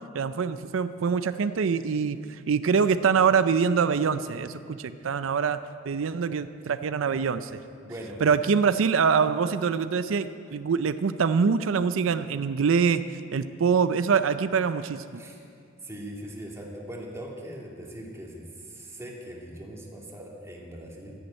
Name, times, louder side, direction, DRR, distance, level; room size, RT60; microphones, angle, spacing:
voice 1, 0.1-5.6 5.8-7.6 8.2-15.2, right 6 dB, 90° right, 11 dB, 0.5 m, -24 dB
voice 2, 7.8-8.2 15.2-15.4 15.8-21.2, right 1 dB, 15° right, -2 dB, 2.4 m, -40 dB
13.0 x 10.5 x 8.9 m, 2.4 s
head